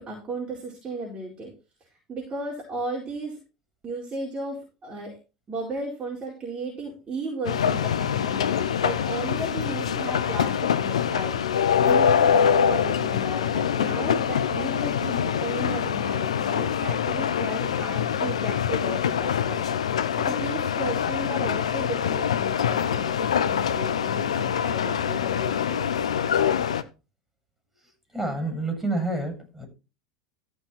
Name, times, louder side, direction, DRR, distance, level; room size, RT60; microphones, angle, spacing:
voice 1, 0.0-1.5 2.1-3.4 3.8-5.2 5.5-26.0, right 2 dB, 30° right, 4.6 m, -35 dB
sound 1, 7.4-26.8, left 8 dB, 75° left, 0.8 m, -24 dB
voice 2, 28.1-29.7, right 2 dB, 5° right, 7.7 m, -28 dB
14.5 x 6.2 x 4.4 m
figure-of-eight pair, 80°, 3 cm